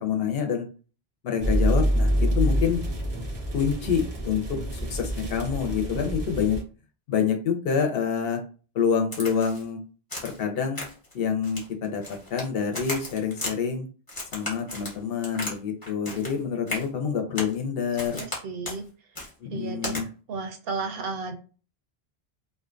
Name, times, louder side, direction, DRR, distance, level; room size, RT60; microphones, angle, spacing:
voice 1, 0.0-0.7 1.2-2.8 3.5-6.6 7.1-8.4 8.7-9.8 10.2-10.8 11.1-13.9 14.3-18.2 19.4-20.1, left 7 dB, 70° left, 4 dB, 0.8 m, -27 dB
sound 1, 1.4-6.6, equal, 30° right, 0.5 m, -26 dB
Crack, 9.1-9.7 10.1-10.4 10.8-11.1 11.4-12.5 12.7-13.5 14.1-15.6 15.8-16.4 16.7-16.9 17.4-17.6 18.0-18.4 18.6-18.8 19.2-19.3 19.8-20.0, left 1 dB, 25° left, 0.8 m, -35 dB
voice 2, 18.2-18.8 19.5-20.0 20.3-21.3, right 4 dB, 70° right, 4 dB, 0.7 m, -33 dB
2.4 x 2.2 x 2.4 m, 0.36 s
omnidirectional pair, 1.1 m